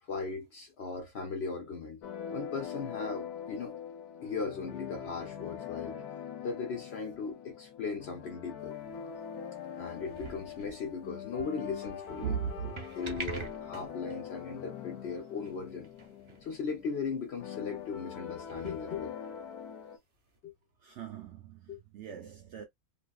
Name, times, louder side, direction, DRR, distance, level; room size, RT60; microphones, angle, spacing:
voice 1, 0.0-2.0 2.3-3.8 4.2-6.0 6.4-8.8 9.8-12.4 12.9-15.9 16.4-19.2 20.4-20.5 21.7-21.8, left 5 dB, 55° left, 0.7 m, -38 dB
sound 1, 2.0-20.0, left 8 dB, 80° left, 1.1 m, -43 dB
sound 2, 8.6-9.2 9.8-10.7 11.8-14.2 14.6-14.7 15.1-15.2 15.4-15.5 15.8-16.6 16.8-16.9 17.8-17.9 18.3-19.5 20.3-20.4, right 4 dB, 35° right, 0.5 m, -46 dB
voice 2, 12.2-12.7 20.8-22.7, right 8 dB, 65° right, 0.7 m, -38 dB
2.6 x 2.5 x 2.3 m
omnidirectional pair, 1.6 m